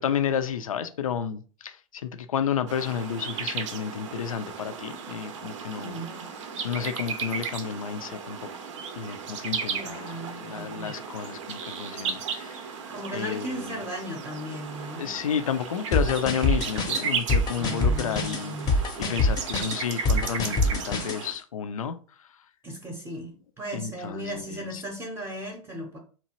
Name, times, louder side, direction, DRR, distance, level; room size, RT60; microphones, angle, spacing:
voice 1, 0.0-6.0 6.6-8.6 9.0-10.1 10.4-12.7 13.1-13.8 15.0-22.3 23.7-24.8, left 7 dB, 80° left, 0.4 m, -31 dB
sound 1, 2.7-21.3, right 6 dB, 65° right, 0.5 m, -35 dB
voice 2, 5.8-6.3 9.7-11.0 12.9-15.1 17.6-18.7 22.6-26.0, equal, 15° right, 0.7 m, -37 dB
sound 2, 15.9-21.2, left 2 dB, 25° left, 0.6 m, -25 dB
2.8 x 2.3 x 2.8 m
figure-of-eight pair, 95°, 18 cm